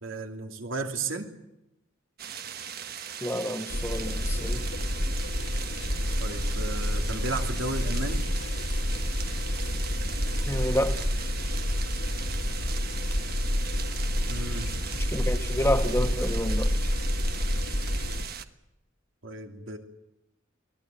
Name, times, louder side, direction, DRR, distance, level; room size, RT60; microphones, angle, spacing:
voice 1, 0.0-1.3 6.2-8.3 14.3-14.7 19.2-19.8, right 2 dB, 90° right, 3 dB, 2.9 m, -34 dB
sound 1, 2.2-18.4, right 8 dB, 50° right, 1.2 m, -39 dB
voice 2, 3.2-4.7 10.5-11.0 15.1-16.7, left 1 dB, 15° left, 7 dB, 1.2 m, -29 dB
sound 2, 3.7-18.2, left 1 dB, 60° left, 2.0 m, -29 dB
23.5 x 17.5 x 9.2 m, 0.89 s
head